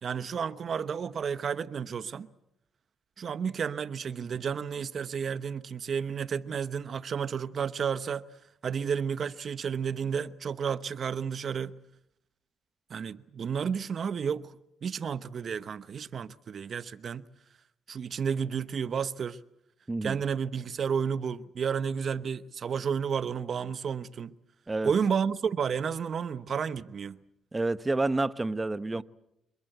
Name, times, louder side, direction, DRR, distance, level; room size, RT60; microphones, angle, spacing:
voice 1, 0.0-2.3 3.2-8.2 8.6-11.8 12.9-17.2 17.9-19.4 20.0-24.3 24.8-27.2 28.9-29.0, right 7 dB, 50° right, 1.0 m, -31 dB
voice 2, 27.5-29.0, right 2 dB, 20° right, 0.9 m, -29 dB
26.0 x 23.0 x 8.0 m
cardioid pair, 90°, 0 cm